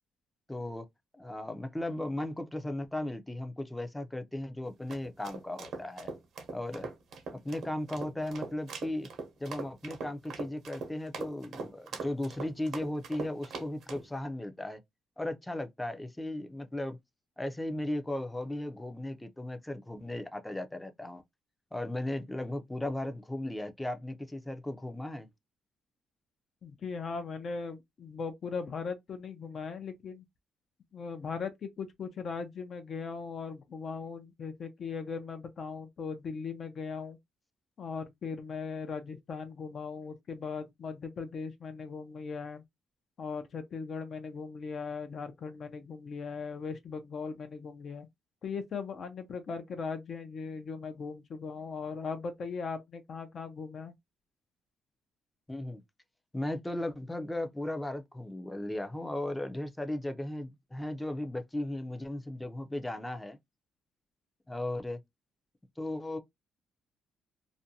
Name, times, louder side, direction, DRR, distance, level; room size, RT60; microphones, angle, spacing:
voice 1, 0.5-0.8 1.2-6.1 6.5-6.9 7.4-9.1 9.4-14.8 15.2-17.0 17.4-21.2 21.7-25.3 55.5-55.8 56.3-63.4 64.5-65.0 65.8-66.2, left 1 dB, 10° left, 0.5 m, -36 dB
sound 1, 4.6-14.1, right 4 dB, 70° right, 0.8 m, -41 dB
voice 2, 26.6-30.3 30.9-37.2 37.8-42.6 43.2-48.1 48.4-53.9, left 5 dB, 55° left, 0.6 m, -39 dB
2.5 x 2.2 x 2.7 m
cardioid pair, 90°, 0 cm